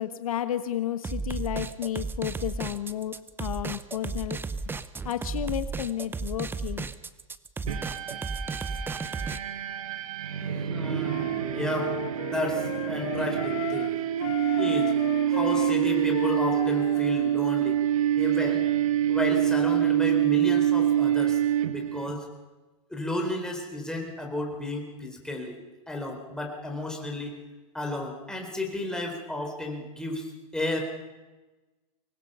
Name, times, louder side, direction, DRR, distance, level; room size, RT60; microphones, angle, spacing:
voice 1, 0.0-4.4 4.7-4.8 5.0-6.9, left 11 dB, 85° left, 10 dB, 1.3 m, -32 dB
sound 1, 1.0-9.4, right 4 dB, 10° right, 0.8 m, -34 dB
sound 2, 7.7-22.1, right 11 dB, 80° right, 1.5 m, -26 dB
voice 2, 10.5-11.2 11.5-12.0 12.2-13.9 14.6-15.0 15.3-17.8 18.1-18.7 19.1-21.4 21.7-22.2 22.9-25.6 25.9-27.3 27.7-30.3 30.5-30.8, left 1 dB, 5° left, 2 dB, 4.2 m, -32 dB
Wind instrument woodwind instrument, 11.0-13.9 14.2-17.4, left 13 dB, 65° left, 1.4 m, -36 dB
24.5 x 19.5 x 5.6 m, 1.2 s
hypercardioid pair, 120°, 18 cm